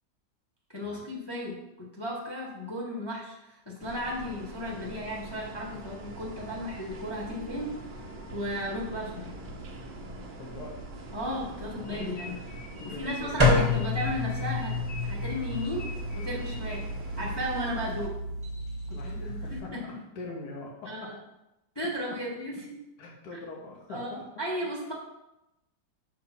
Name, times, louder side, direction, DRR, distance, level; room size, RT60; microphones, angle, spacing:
voice 1, 0.7-7.7 8.3-9.3 11.1-12.4 13.0-14.7 15.0-15.8 16.1-16.8 17.2-18.1 18.9-19.4 20.9-21.2 21.7-22.5 23.9-24.9, equal, 20° left, -3 dB, 0.8 m, -35 dB
sound 1, 3.8-18.1, right 2 dB, 75° right, 0.4 m, -43 dB
voice 2, 10.4-10.8 11.6-13.5 16.8-16.9 18.9-21.1 22.5-22.6 23.0-24.0, left 2 dB, 60° left, -1 dB, 1.5 m, -43 dB
sound 2, 11.8-17.2, left 4 dB, 80° left, 0.5 m, -47 dB
sound 3, 13.4-19.6, left 2 dB, 20° right, 0.7 m, -29 dB
6.0 x 3.2 x 5.7 m, 0.91 s
omnidirectional pair, 2.1 m